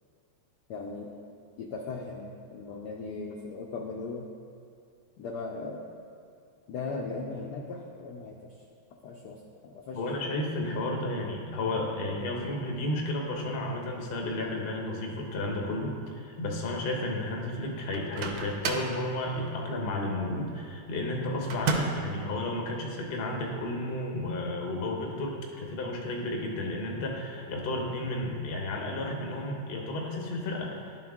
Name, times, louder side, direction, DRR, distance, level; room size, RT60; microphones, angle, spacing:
voice 1, 0.7-1.1 1.6-4.3 5.2-5.9 6.7-8.6 9.0-10.0, left 3 dB, 75° left, 0 dB, 0.9 m, -38 dB
voice 2, 9.9-31.0, left 1 dB, 50° left, 0 dB, 0.6 m, -32 dB
Microwave oven, 17.9-19.0 21.5-22.1, right 4 dB, 75° right, 1.4 m, -31 dB
11.5 x 4.5 x 3.5 m, 2.3 s
omnidirectional pair, 2.4 m